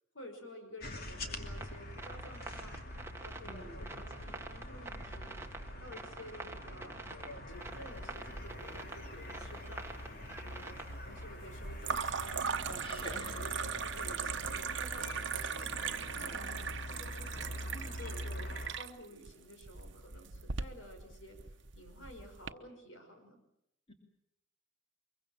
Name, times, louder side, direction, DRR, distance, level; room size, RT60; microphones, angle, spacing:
voice 1, 0.1-2.8 3.2-5.4 5.8-7.0 7.3-9.9 10.4-12.6 12.8-15.7 16.1-23.4, equal, 85° left, 5 dB, 5.7 m, -52 dB
sound 1, 0.8-18.7, left 1 dB, 50° left, 2.7 m, -44 dB
sound 2, 1.5-11.3, right 3 dB, 15° right, 1.6 m, -47 dB
voice 2, 3.4-3.9 12.7-13.4 16.1-16.5 23.9-24.0, equal, 30° left, 3 dB, 3.0 m, -48 dB
sound 3, 8.7-9.4 9.7-10.4 11.8-22.5, right 6 dB, 65° right, 1.0 m, -39 dB
24.0 x 23.0 x 7.4 m, 0.82 s
head